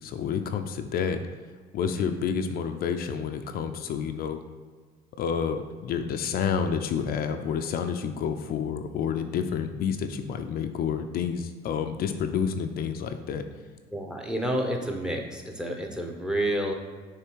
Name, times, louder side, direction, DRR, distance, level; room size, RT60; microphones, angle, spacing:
voice 1, 0.0-1.2 1.7-4.4 5.2-13.4, left 7 dB, 60° left, 6 dB, 0.5 m, -29 dB
voice 2, 13.9-16.7, right 1 dB, 5° right, 2 dB, 0.9 m, -29 dB
6.6 x 3.3 x 4.7 m, 1.5 s
cardioid pair, 110°, 17 cm